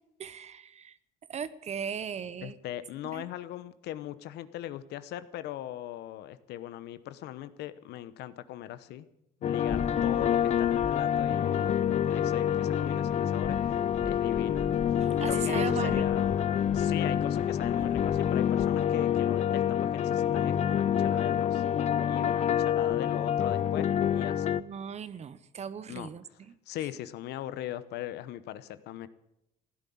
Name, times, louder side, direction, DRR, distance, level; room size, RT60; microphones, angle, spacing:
voice 1, 0.2-1.0 1.3-2.5 3.0-3.2 15.0-16.2 24.6-26.5, right 7 dB, 40° right, 16 dB, 0.9 m, -37 dB
voice 2, 2.4-9.1 9.4-13.6 14.0-21.6 22.0-24.6 25.9-26.1 26.7-29.1, left 13 dB, 80° left, 14 dB, 1.0 m, -40 dB
sound 1, 9.4-24.6, left 9 dB, 40° left, 0.6 m, -27 dB
sound 2, 9.7-18.9, left 2 dB, 5° left, 0.9 m, -44 dB
15.5 x 10.0 x 8.6 m, 0.84 s
cardioid pair, 110°, 17 cm